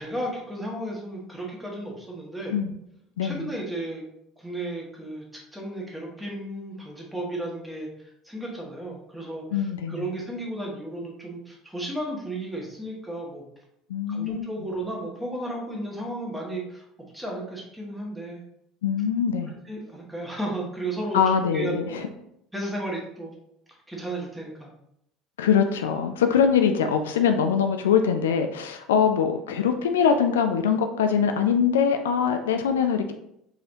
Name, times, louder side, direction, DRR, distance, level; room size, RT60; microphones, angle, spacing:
voice 1, 0.0-2.5 3.2-4.0 4.4-13.5 14.1-16.8 17.1-18.4 19.6-21.2 21.5-22.0 22.5-23.3 23.7-24.7, right 1 dB, 5° right, -2 dB, 1.5 m, -34 dB
voice 2, 3.2-3.5 9.5-10.1 13.9-14.5 18.8-19.5 21.1-22.1 25.4-33.1, left 7 dB, 75° left, 6 dB, 0.3 m, -23 dB
4.6 x 3.3 x 2.7 m, 0.77 s
figure-of-eight pair, 65°, 0 cm